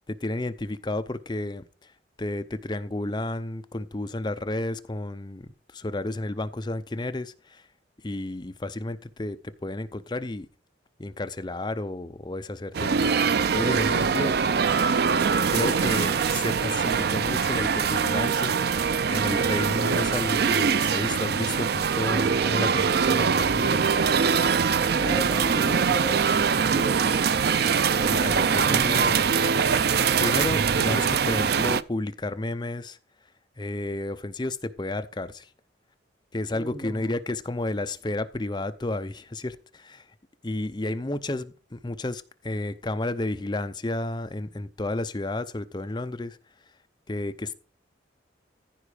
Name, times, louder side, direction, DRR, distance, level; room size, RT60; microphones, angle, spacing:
voice 1, 0.1-1.9 2.2-7.6 8.0-10.5 11.0-14.4 15.5-23.9 28.0-29.2 30.2-33.0 33.6-35.5 36.3-40.0 40.4-46.4 47.1-47.5, left 2 dB, 25° left, 0.6 m, -32 dB
sound 1, 12.7-31.8, right 6 dB, 55° right, 0.4 m, -23 dB
sound 2, 13.1-30.1, right 3 dB, 75° right, 4.2 m, -50 dB
voice 2, 24.9-27.0 36.5-37.2, right 1 dB, 5° left, 3.4 m, -36 dB
14.5 x 4.9 x 4.9 m
head